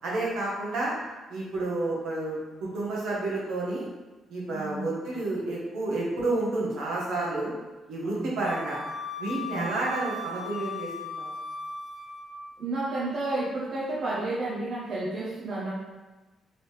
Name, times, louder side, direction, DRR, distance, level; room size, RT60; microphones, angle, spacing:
voice 1, 0.0-0.9 1.3-3.9 4.3-7.5 7.9-8.8 9.2-10.9 11.2-11.3, right 2 dB, 80° right, -5 dB, 1.0 m, -30 dB
voice 2, 4.5-4.9 8.0-8.4 9.4-9.7 12.6-15.7, right 2 dB, 55° right, -6 dB, 0.7 m, -31 dB
Wind instrument woodwind instrument, 8.4-12.5, left 2 dB, 30° left, 0.5 m, -37 dB
3.2 x 2.7 x 3.2 m, 1.1 s
cardioid pair, 90°, 0 cm